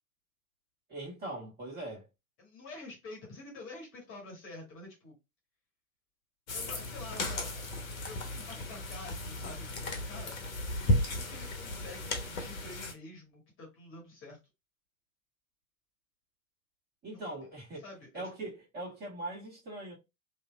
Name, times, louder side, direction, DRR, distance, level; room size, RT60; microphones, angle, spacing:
voice 1, 0.9-2.1 17.0-17.9 18.1-19.9, right 2 dB, 20° right, 1.7 m, -41 dB
voice 2, 2.4-5.1 6.5-7.6 8.0-10.4 11.1-14.4 17.1-17.2 17.8-18.2, left 2 dB, 30° left, 1.5 m, -48 dB
sound 1, 6.5-12.9, left 1 dB, 65° left, 1.0 m, -34 dB
3.2 x 2.8 x 2.3 m
figure-of-eight pair, 90°, 43 cm